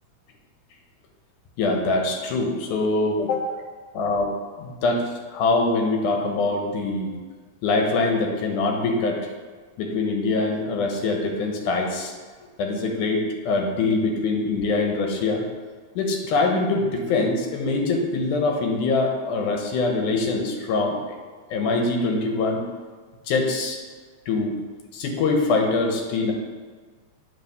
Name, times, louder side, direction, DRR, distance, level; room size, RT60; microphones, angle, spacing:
voice 1, 1.6-3.5 3.9-7.1 7.6-9.3 9.8-12.1 12.6-15.4 16.0-21.0 21.5-22.6 23.3-23.8 24.3-24.5 24.9-26.3, left 3 dB, 90° left, 2 dB, 2.6 m, -23 dB
8.3 x 3.9 x 6.8 m, 1.5 s
omnidirectional pair, 3.4 m